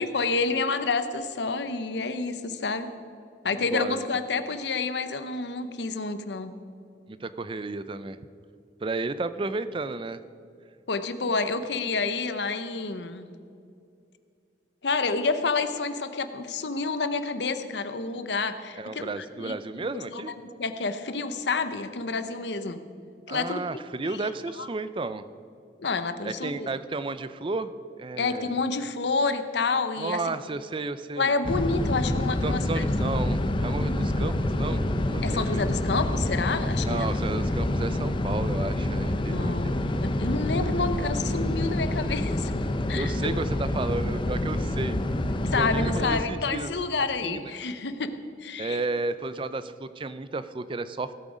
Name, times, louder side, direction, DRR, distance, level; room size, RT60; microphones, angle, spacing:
voice 1, 0.0-2.9 3.4-6.5 10.9-13.3 14.8-19.1 19.4-19.9 20.1-22.8 23.3-24.3 24.6-24.7 25.8-26.7 28.2-30.4 31.2-33.1 35.2-37.2 39.3-42.5 42.9-43.3 45.4-48.8, left 4 dB, 70° left, 10 dB, 0.8 m, -29 dB
voice 2, 3.4-4.2 7.1-8.2 8.8-10.2 18.8-20.3 23.3-25.2 26.2-28.6 30.0-31.3 32.4-35.7 36.8-39.8 42.9-45.0 45.5-46.7 47.2-47.5 48.6-51.1, right 3 dB, 30° right, 13 dB, 0.4 m, -33 dB
sound 1, 31.4-46.2, left 1 dB, 30° left, 0.6 m, -27 dB
17.0 x 7.9 x 5.0 m, 2.5 s
head